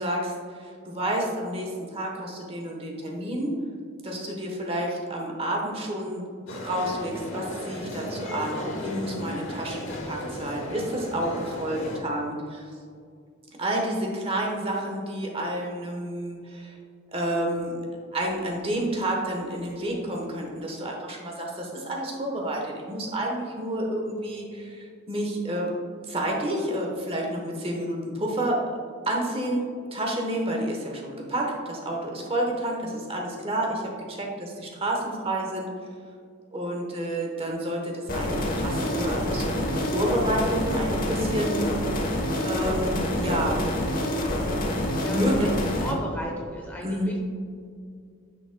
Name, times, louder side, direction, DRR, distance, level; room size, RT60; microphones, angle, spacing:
voice 1, 0.0-3.5 4.0-12.6 13.6-16.7 17.1-17.8 18.1-28.6 29.0-29.6 29.9-33.8 34.1-35.7 36.5-41.6 42.4-43.6 44.7-45.5 46.8-47.1, right 1 dB, 25° right, 0 dB, 1.0 m, -30 dB
sound 1, 6.5-12.0, left 1 dB, 65° left, 1.0 m, -35 dB
sound 2, 38.1-45.9, left 1 dB, 40° left, 1.1 m, -27 dB
voice 2, 44.1-44.4 45.0-45.5 45.8-47.3, equal, 10° left, -1 dB, 0.7 m, -36 dB
10.0 x 6.0 x 2.2 m, 2.2 s
head